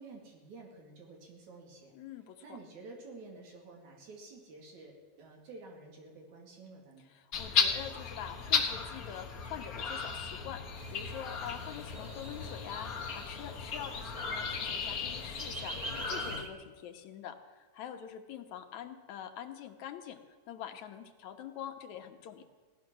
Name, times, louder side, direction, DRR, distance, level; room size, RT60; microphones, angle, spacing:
voice 1, 0.0-1.9 2.4-7.1, right 3 dB, 75° right, 0 dB, 3.9 m, -50 dB
voice 2, 1.9-2.6 7.1-10.6 10.9-20.2 20.5-22.4, left 9 dB, 75° left, 6 dB, 2.3 m, -45 dB
sound 1, 7.3-16.4, left 5 dB, 55° left, 1.0 m, -35 dB
sound 2, 10.8-16.5, right 1 dB, 25° right, 0.9 m, -47 dB
17.5 x 11.5 x 6.2 m, 1.4 s
omnidirectional pair, 3.4 m